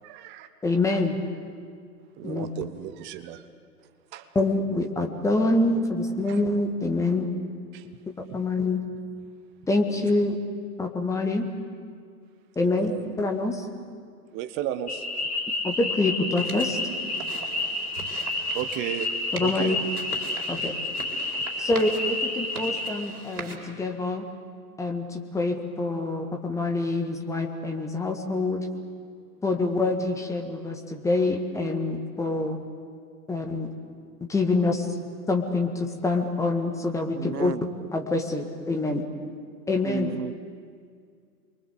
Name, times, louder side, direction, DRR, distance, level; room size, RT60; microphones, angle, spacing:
voice 1, 0.0-0.5 2.2-3.4 4.1-4.3 6.3-6.4 7.7-7.9 8.3-8.4 12.6-13.2 14.3-15.3 18.5-19.1 19.4-19.8 20.6-20.7 21.4-21.5, right 11 dB, 20° right, 9 dB, 1.2 m, -34 dB
voice 2, 0.6-1.2 2.2-2.5 4.3-7.3 8.3-8.8 9.7-10.4 10.8-11.5 12.6-13.7 15.6-16.8 19.3-19.8 20.5-20.7 21.6-24.3 24.8-28.7 29.4-32.6 33.3-33.7 34.3-34.9 35.3-37.5 37.9-39.1 39.7-40.2, left 2 dB, 5° left, 4 dB, 1.9 m, -26 dB
sound 1, 14.9-22.9, left 2 dB, 70° left, 5.5 m, -30 dB
sound 2, 16.4-23.6, right 4 dB, 65° right, 4.7 m, -41 dB
voice 3, 37.2-37.6 39.8-40.3, right 6 dB, 80° right, 18 dB, 0.8 m, -32 dB
28.5 x 23.5 x 8.2 m, 2.2 s
figure-of-eight pair, 115°, 47 cm